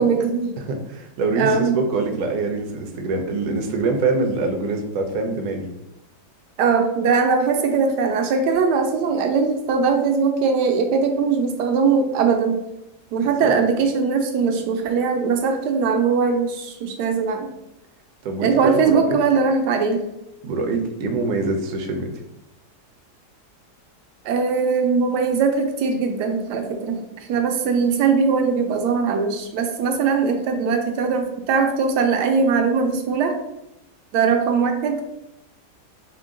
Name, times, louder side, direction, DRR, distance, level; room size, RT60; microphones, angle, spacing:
voice 1, 0.0-0.6 1.4-1.8 6.6-12.6 13.1-17.5 18.4-20.0 20.7-20.8 24.2-33.4 34.1-35.0, right 5 dB, 80° right, 5 dB, 1.2 m, -20 dB
voice 2, 0.6-5.7 13.4-13.5 18.2-19.2 20.4-22.1, right 3 dB, 65° right, 4 dB, 0.9 m, -24 dB
4.5 x 2.2 x 3.6 m, 0.87 s
omnidirectional pair, 1.8 m